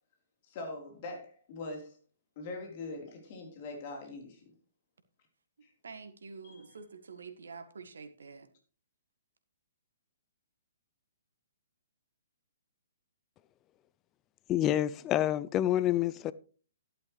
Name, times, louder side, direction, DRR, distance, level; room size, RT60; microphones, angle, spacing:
voice 1, 0.5-2.0 2.4-4.4 5.6-5.7 6.4-6.7, left 2 dB, 40° left, 3.7 m, -42 dB
voice 2, 5.8-8.5, right 5 dB, 70° right, 1.6 m, -47 dB
voice 3, 14.5-16.3, left 12 dB, 25° left, 0.4 m, -28 dB
12.0 x 11.0 x 3.2 m
figure-of-eight pair, 125°, 0 cm